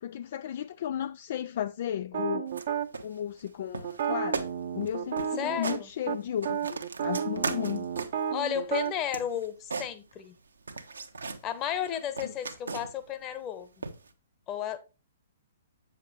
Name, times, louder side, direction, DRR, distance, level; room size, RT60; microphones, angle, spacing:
voice 1, 0.0-2.5 3.0-4.5 4.7-7.9 12.2-12.3, left 10 dB, 50° left, 0.3 m, -34 dB
sound 1, 2.1-2.9 3.8-5.8 6.1-6.2 6.4-8.9, right 8 dB, 50° right, 0.8 m, -32 dB
sound 2, 2.5-2.7 2.9-3.5 3.7-4.1 4.3-4.5 4.8-4.9 5.2-5.8 6.2-8.3 8.7-10.4 10.7-11.4 11.8-13.1 13.8-14.1, right 4 dB, 70° right, 1.1 m, -37 dB
voice 2, 5.4-5.9 8.3-10.4 11.4-13.7 14.5-14.8, left 10 dB, 25° left, 1.1 m, -33 dB
8.2 x 6.9 x 3.2 m
figure-of-eight pair, 120°, 0 cm